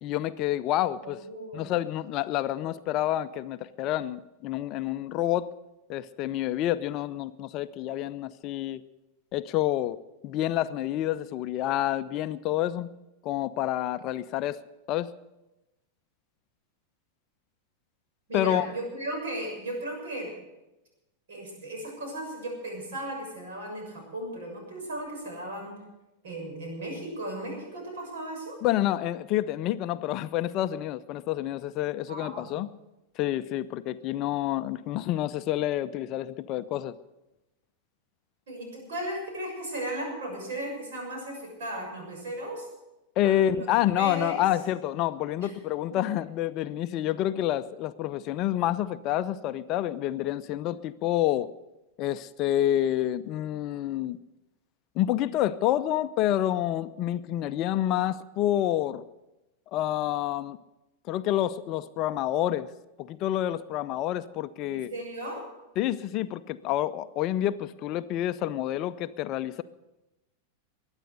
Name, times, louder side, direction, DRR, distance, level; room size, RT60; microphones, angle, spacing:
voice 1, 0.0-1.2 1.5-5.5 5.9-8.8 9.3-10.0 10.2-12.9 13.2-14.6 14.9-15.1 18.3-18.7 28.6-32.7 33.2-36.9 43.2-51.5 52.0-54.2 55.0-59.0 59.7-60.6 61.1-62.7 63.0-64.9 65.8-69.6, left 13 dB, 40° left, 13 dB, 0.5 m, -28 dB
voice 2, 1.0-1.8 18.3-20.3 21.3-25.8 26.2-28.6 32.1-32.5 38.5-42.7 43.2-43.7 44.0-44.4 45.4-45.5 45.9-46.0 64.7-65.4, right 1 dB, 60° right, 1 dB, 6.7 m, -36 dB
22.0 x 9.0 x 6.6 m, 0.98 s
figure-of-eight pair, 90°, 0 cm